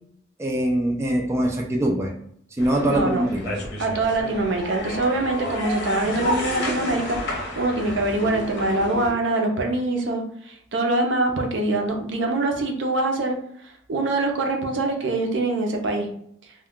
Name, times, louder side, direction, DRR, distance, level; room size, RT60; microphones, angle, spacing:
voice 1, 0.4-2.1 2.6-3.6, right 1 dB, 15° right, 1 dB, 0.3 m, -23 dB
sound 1, 2.6-9.1, left 1 dB, 65° left, 0.8 m, -31 dB
voice 2, 2.9-3.2 3.8-13.4 13.9-16.1, right 2 dB, 70° right, 3 dB, 0.6 m, -24 dB
2.3 x 2.2 x 3.5 m, 0.69 s
head